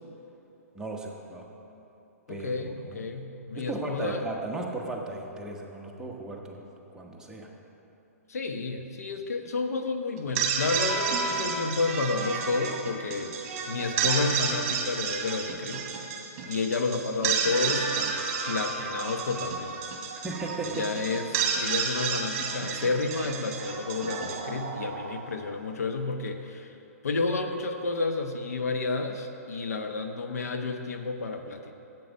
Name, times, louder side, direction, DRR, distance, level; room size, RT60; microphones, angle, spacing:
voice 1, 0.7-1.5 2.3-2.5 2.9-3.0 3.5-7.5 20.2-20.9, right 2 dB, 5° right, -1 dB, 1.1 m, -36 dB
voice 2, 2.3-4.2 8.3-13.3 13.7-15.8 16.4-19.7 20.6-26.7 27.0-31.7, left 3 dB, 75° left, 5 dB, 1.0 m, -31 dB
sound 1, 10.2-25.4, right 5 dB, 40° right, 1.6 m, -31 dB
11.0 x 8.3 x 5.3 m, 3.0 s
hypercardioid pair, 125°, 9 cm